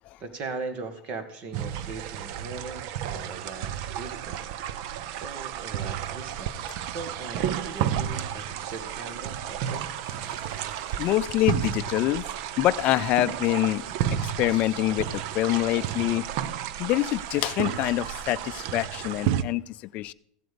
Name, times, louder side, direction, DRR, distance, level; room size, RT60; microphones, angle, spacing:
voice 1, 0.2-4.4 4.7-9.9, right 4 dB, 35° right, 9 dB, 1.8 m, -39 dB
sound 1, 1.5-19.4, right 10 dB, 55° right, 0.7 m, -32 dB
voice 2, 11.0-12.2 12.6-13.8 14.2-16.2 16.8-20.1, left 16 dB, 40° left, 12 dB, 0.5 m, -25 dB
15.5 x 7.7 x 5.1 m, 0.64 s
supercardioid pair, 150°, 4 cm